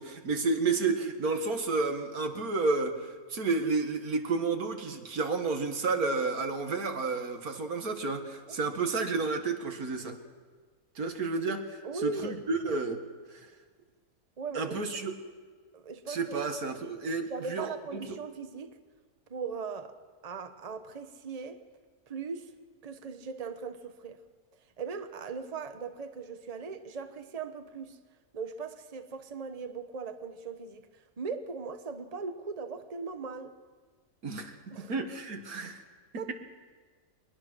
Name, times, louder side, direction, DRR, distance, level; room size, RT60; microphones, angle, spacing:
voice 1, 0.0-10.2 11.0-13.0 13.3-13.4 14.5-15.1 16.1-18.2 34.2-34.6 34.9-35.8 36.1-36.3, right 4 dB, 90° right, 2.3 m, -31 dB
voice 2, 11.8-12.4 14.4-14.8 15.7-16.4 17.3-18.7 19.3-19.9 20.2-21.6 22.1-22.5 22.8-24.2 24.8-28.0 28.3-30.9 31.2-33.5 34.7-34.9 36.2-36.3, right 5 dB, 30° right, 1.1 m, -38 dB
23.0 x 21.0 x 6.3 m
omnidirectional pair, 1.5 m